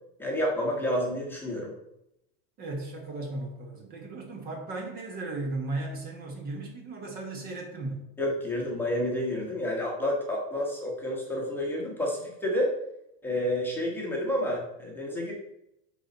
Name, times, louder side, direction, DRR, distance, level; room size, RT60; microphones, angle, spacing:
voice 1, 0.2-1.7 8.2-12.7 13.2-15.3, left 1 dB, 5° left, -3 dB, 1.2 m, -29 dB
voice 2, 2.6-8.1, right 2 dB, 30° right, 2 dB, 1.3 m, -36 dB
9.9 x 4.1 x 4.1 m, 0.82 s
supercardioid pair, 165°, 31 cm